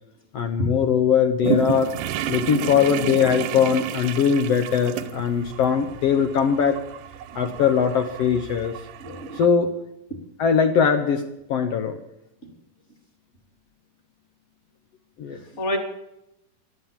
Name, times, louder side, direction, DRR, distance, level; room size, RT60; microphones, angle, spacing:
voice 1, 0.3-2.0 2.3-6.8 7.3-8.8 9.3-9.7 10.4-12.0 15.2-15.4, left 7 dB, 65° left, 7 dB, 1.7 m, -21 dB
sound 1, 1.4-9.5, right 8 dB, 75° right, 2.3 m, -31 dB
voice 2, 9.0-9.4 15.5-15.8, equal, 20° left, 3 dB, 2.8 m, -28 dB
17.0 x 11.5 x 7.3 m, 0.84 s
omnidirectional pair, 3.8 m